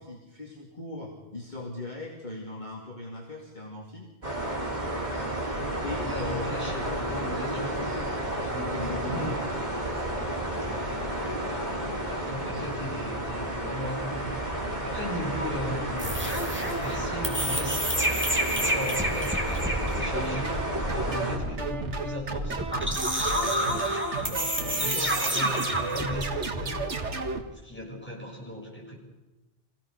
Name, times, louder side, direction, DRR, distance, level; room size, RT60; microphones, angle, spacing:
voice 1, 0.0-4.6 5.8-8.1 8.7-9.3, left 2 dB, 40° left, -2 dB, 2.8 m, -40 dB
sound 1, 4.2-21.4, right 1 dB, 40° right, 4.4 m, -31 dB
voice 2, 6.0-7.9 8.5-9.5 10.6-11.1 11.4-14.5 14.8-16.2 16.7-17.8 18.5-22.6 23.2-26.9 27.6-29.0, equal, 10° left, -3 dB, 6.7 m, -37 dB
sound 2, 16.0-26.3, equal, 10° right, 2.6 m, -29 dB
sound 3, 20.1-27.4, right 3 dB, 80° right, 2.0 m, -33 dB
26.5 x 17.0 x 6.7 m, 1.0 s
omnidirectional pair, 1.2 m